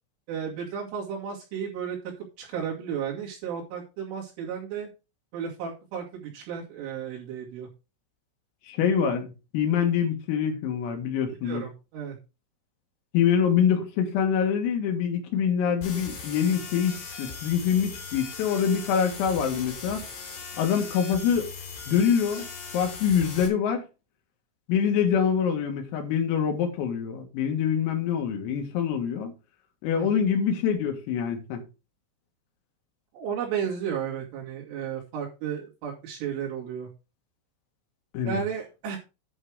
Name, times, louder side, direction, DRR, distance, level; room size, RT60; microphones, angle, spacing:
voice 1, 0.3-2.0 2.4-4.9 5.3-7.7 11.4-12.2 30.0-30.3 33.1-36.9 38.3-39.0, right 7 dB, 70° right, 4.9 m, -33 dB
voice 2, 8.7-11.6 13.1-20.0 20.6-21.5 21.9-22.5 22.7-23.8 24.7-29.3 29.8-31.6 38.1-38.4, left 7 dB, 85° left, 4.5 m, -25 dB
sound 1, 15.8-23.5, left 5 dB, 60° left, 5.7 m, -39 dB
11.0 x 5.6 x 4.9 m
omnidirectional pair, 5.9 m